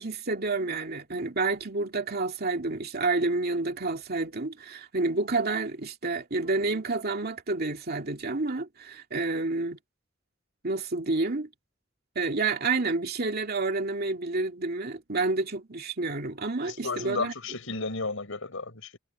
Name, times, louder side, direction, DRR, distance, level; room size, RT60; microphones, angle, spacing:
voice 1, 0.0-9.8 10.6-11.5 12.2-17.3, right 3 dB, 50° right, 2.4 m, -29 dB
voice 2, 16.6-19.0, left 3 dB, 85° left, 4.7 m, -33 dB
head